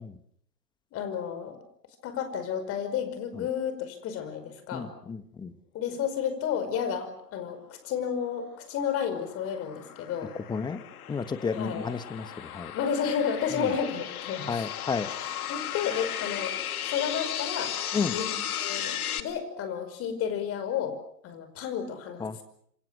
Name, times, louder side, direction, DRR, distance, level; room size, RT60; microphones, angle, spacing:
voice 1, 0.9-1.6 2.0-4.9 5.7-10.3 11.5-11.9 12.7-14.5 15.5-16.6 16.9-17.7 18.1-21.0 21.2-22.2, left 7 dB, 30° left, 10 dB, 5.3 m, -31 dB
voice 2, 4.7-5.5 10.5-10.8 11.1-12.7 13.5-13.7 14.5-15.1 17.9-18.2 22.2-22.4, left 5 dB, 10° left, 12 dB, 1.3 m, -32 dB
sound 1, 8.4-19.2, left 10 dB, 60° left, 2.4 m, -35 dB
28.0 x 25.5 x 6.4 m, 0.69 s
hypercardioid pair, 125°, 49 cm